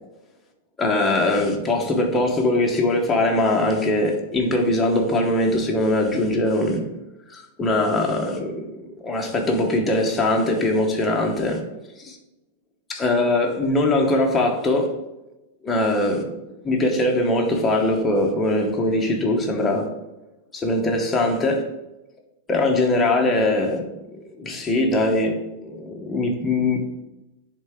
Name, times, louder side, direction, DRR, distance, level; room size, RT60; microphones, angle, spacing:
voice 1, 0.8-6.8 7.3-8.7 9.0-11.6 12.0-12.2 12.9-15.0 15.6-16.3 16.6-19.9 20.5-21.7 22.5-23.9 24.4-26.8, left 2 dB, 10° left, 0.9 m, -21 dB
9.9 x 3.7 x 3.6 m
supercardioid pair, 170°, 0 cm